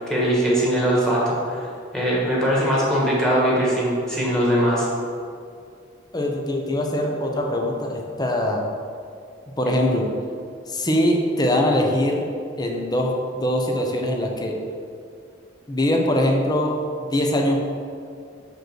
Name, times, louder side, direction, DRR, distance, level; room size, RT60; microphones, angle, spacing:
voice 1, 0.1-4.9, equal, 5° left, -6 dB, 1.7 m, -21 dB
voice 2, 6.1-8.7 9.6-10.1 10.7-12.3 12.6-14.6 15.7-16.7 17.1-17.6, left 1 dB, 20° left, 1 dB, 0.8 m, -22 dB
6.4 x 5.3 x 4.6 m, 2.3 s
head